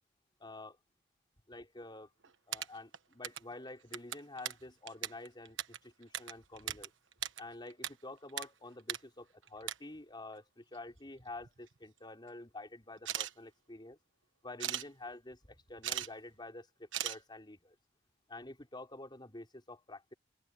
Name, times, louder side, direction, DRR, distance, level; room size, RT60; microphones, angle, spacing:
voice 1, 0.4-0.8 1.5-2.1 2.5-6.9 7.4-14.0 14.4-17.7 18.3-20.1, left 2 dB, 25° left, 4.8 m, -49 dB
sound 1, 2.2-3.5 3.8-6.9 7.1-7.9 8.2-8.5 8.8-9.0 9.4-9.8 10.7-10.8 11.2-11.8 13.0-13.3 14.6-14.9 15.6-16.1 16.3-16.4 16.9-17.2, right 11 dB, 80° right, 1.3 m, -38 dB
open air
head